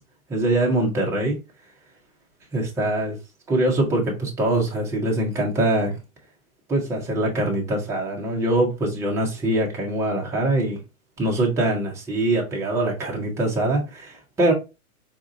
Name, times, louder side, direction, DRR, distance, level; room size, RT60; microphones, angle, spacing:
voice 1, 0.3-1.4 2.5-3.2 3.5-5.9 6.7-10.8 11.2-14.5, right 1 dB, 5° right, 0.6 m, -23 dB
4.1 x 2.3 x 2.5 m
figure-of-eight pair, 115°, 45 cm